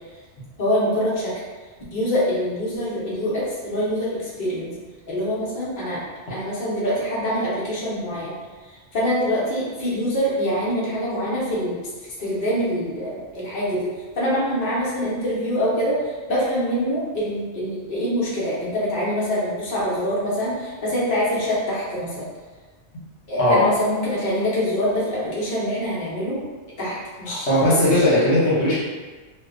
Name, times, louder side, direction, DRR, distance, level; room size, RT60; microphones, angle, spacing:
voice 1, 0.6-1.3 1.9-4.7 5.1-6.0 6.3-8.4 8.6-11.8 12.2-22.3 23.3-26.4 26.8-28.0, equal, 50° left, -8 dB, 0.8 m, -25 dB
voice 2, 27.3-28.8, left 1 dB, 75° left, -8 dB, 1.1 m, -18 dB
2.6 x 2.1 x 2.5 m, 1.3 s
omnidirectional pair, 1.1 m